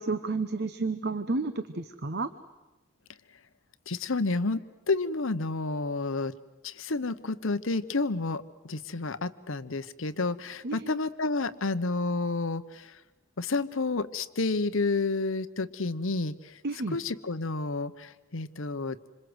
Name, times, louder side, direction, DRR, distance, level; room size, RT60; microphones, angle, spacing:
voice 1, 0.0-2.3 10.6-11.0 16.6-17.0, right 3 dB, 50° right, 11 dB, 1.0 m, -31 dB
voice 2, 3.9-4.6 4.9-6.3 6.6-12.9 13.4-16.5 16.9-19.0, left 3 dB, 65° left, 13 dB, 1.0 m, -30 dB
27.0 x 26.5 x 8.0 m, 1.0 s
head